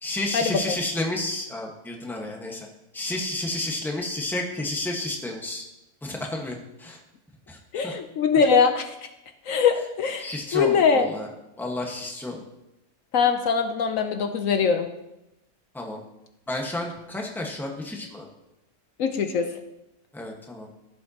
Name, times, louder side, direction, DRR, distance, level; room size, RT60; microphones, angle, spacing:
voice 1, 0.0-2.7 2.9-5.6 6.0-7.0 7.5-7.6 7.8-7.9 10.2-11.3 11.6-12.4 15.7-16.0 16.5-18.3 20.1-20.7, left 2 dB, ahead, 0 dB, 1.2 m, -31 dB
voice 2, 7.7-8.8 9.5-11.1 13.1-14.9 19.0-19.5, left 6 dB, 70° left, 6 dB, 1.1 m, -22 dB
15.0 x 7.5 x 2.9 m, 0.89 s
omnidirectional pair, 1.5 m